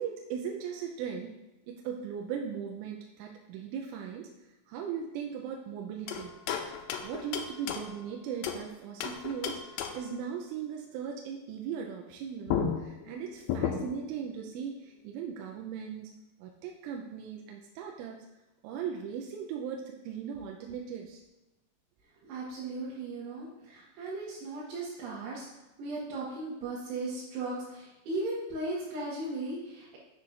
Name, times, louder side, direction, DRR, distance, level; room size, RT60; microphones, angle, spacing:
voice 1, 0.0-1.3 1.7-4.3 4.7-6.3 7.0-16.1 16.4-18.2 18.6-21.2, right 7 dB, 90° right, 1 dB, 3.2 m, -38 dB
sound 1, 6.1-8.7 9.0-10.2 12.1-12.2 12.5-14.1, left 7 dB, 85° left, 2.6 m, -34 dB
voice 2, 22.2-25.5 25.8-30.0, right 2 dB, 70° right, -7 dB, 3.1 m, -37 dB
10.5 x 7.4 x 2.5 m, 0.99 s
omnidirectional pair, 5.6 m